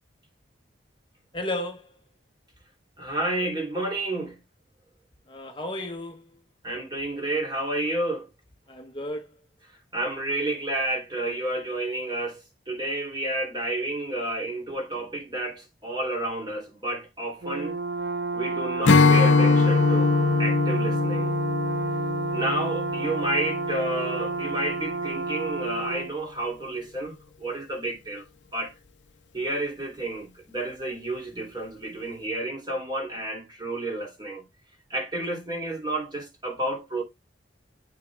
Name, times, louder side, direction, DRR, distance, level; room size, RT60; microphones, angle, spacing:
voice 1, 1.3-1.9 5.3-6.3 8.7-9.3, left 1 dB, 25° left, 0.9 m, -33 dB
voice 2, 3.0-4.4 6.6-8.3 9.9-12.4 12.7-17.8 18.3-21.4 22.3-28.2 28.5-28.7 29.3-34.4 34.9-37.0, right 1 dB, 25° right, 2.9 m, -30 dB
Brass instrument, 17.4-26.1, right 3 dB, 60° right, 0.4 m, -30 dB
Strum, 18.8-24.3, left 4 dB, 80° left, 0.7 m, -22 dB
8.9 x 6.4 x 2.3 m
head